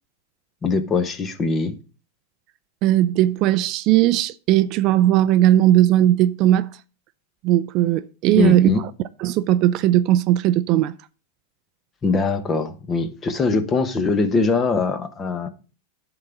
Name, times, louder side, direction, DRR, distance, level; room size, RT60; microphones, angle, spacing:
voice 1, 0.6-1.7 8.4-8.8 12.0-15.5, left 4 dB, 20° left, 1.1 m, -22 dB
voice 2, 2.8-6.7 7.4-8.7 9.2-10.9, right 13 dB, 40° right, 0.4 m, -18 dB
11.5 x 3.9 x 5.8 m
supercardioid pair, 145°, 0 cm